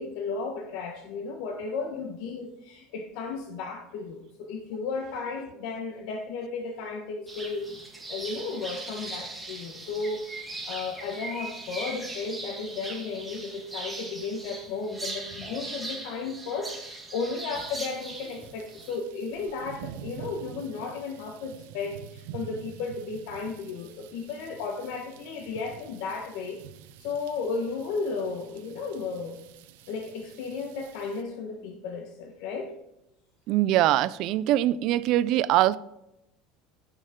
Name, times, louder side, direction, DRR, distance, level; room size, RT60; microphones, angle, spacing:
voice 1, 0.0-26.6 27.0-29.4 29.9-32.8, left 4 dB, 60° left, 2 dB, 1.3 m, -34 dB
sound 1, 7.3-19.0, right 2 dB, 5° right, 1.5 m, -39 dB
sound 2, 17.5-31.2, right 10 dB, 85° right, 0.8 m, -47 dB
voice 2, 33.5-35.8, right 14 dB, 45° right, 18 dB, 0.4 m, -23 dB
16.0 x 6.5 x 3.8 m, 0.85 s
cardioid pair, 175°, 0 cm